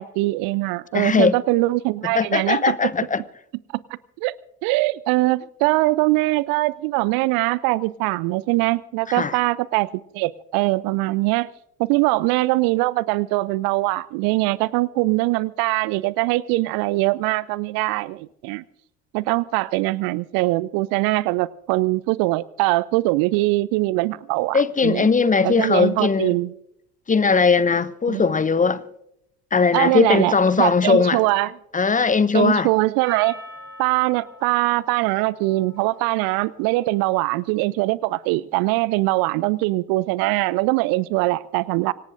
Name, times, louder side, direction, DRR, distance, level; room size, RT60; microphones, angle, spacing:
voice 1, 0.0-2.8 4.2-4.4 4.6-11.5 11.8-18.6 19.1-25.1 25.4-26.5 28.1-28.3 29.7-31.5 32.3-33.3 33.8-41.9, right 20 dB, 50° right, 0.5 m, -22 dB
voice 2, 0.9-1.3 2.2-3.2 9.1-9.3 24.5-26.3 27.1-28.8 29.5-31.2 31.7-32.7, left 5 dB, 15° left, 0.7 m, -19 dB
Percussion, 33.0-37.6, left 1 dB, 25° right, 7.4 m, -44 dB
25.5 x 18.0 x 2.6 m
figure-of-eight pair, 55°, 47 cm